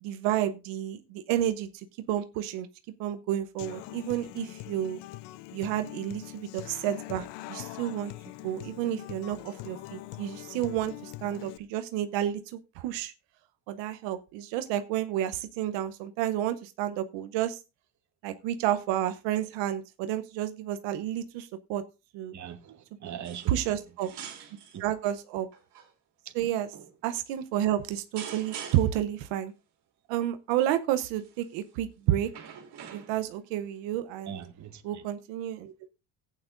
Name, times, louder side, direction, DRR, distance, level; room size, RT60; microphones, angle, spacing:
voice 1, 0.0-2.7 3.0-5.0 5.5-8.1 8.4-13.1 13.7-17.6 18.2-21.8 22.1-22.3 23.5-24.1 24.8-25.5 26.3-26.7 27.0-29.5 30.1-32.3 32.9-34.4 34.8-35.9, right 12 dB, 85° right, 0.9 m, -30 dB
Human voice / Acoustic guitar, 3.6-11.6, left 17 dB, 75° left, 0.7 m, -43 dB
voice 2, 22.3-23.5 24.7-24.8 34.3-35.0, right 9 dB, 40° right, 1.3 m, -41 dB
sound 1, 23.2-23.7 24.0-24.8 25.5-25.9 26.7-27.0 28.2-29.1 31.2-31.5 32.2-33.4 34.4-34.5, right 8 dB, 65° right, 2.6 m, -44 dB
15.5 x 8.7 x 2.5 m
cardioid pair, 110°, 43 cm